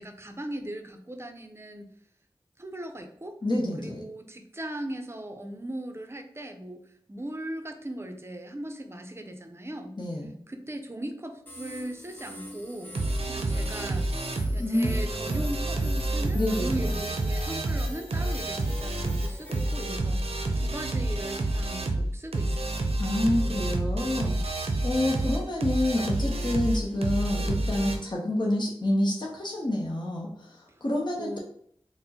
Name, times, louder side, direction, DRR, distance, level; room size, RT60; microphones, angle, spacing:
voice 1, 0.0-1.9 2.6-3.4 3.8-6.8 7.1-9.9 10.5-13.0 13.3-14.1 14.5-20.2 20.6-22.8 30.7-30.8 31.2-31.4, right 1 dB, 25° right, 5 dB, 0.5 m, -38 dB
voice 2, 3.4-4.0 10.0-10.4 14.6-14.9 15.3-15.4 16.3-16.9 23.0-24.6 24.8-31.4, left 1 dB, 50° left, -3 dB, 0.7 m, -28 dB
sound 1, 11.5-19.8, equal, 20° left, 0.8 m, -44 dB
sound 2, 12.9-28.0, right 2 dB, 80° right, 0.5 m, -28 dB
4.1 x 2.1 x 2.8 m, 0.66 s
wide cardioid pair, 40°, 10 cm